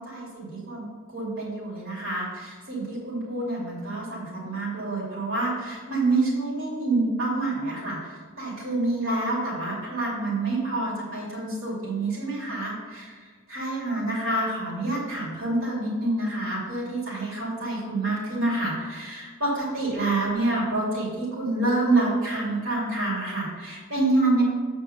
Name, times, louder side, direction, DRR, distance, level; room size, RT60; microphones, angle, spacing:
voice 1, 0.0-13.2 13.5-24.4, right 2 dB, 80° right, -6 dB, 2.8 m, -27 dB
7.8 x 4.6 x 6.5 m, 1.5 s
head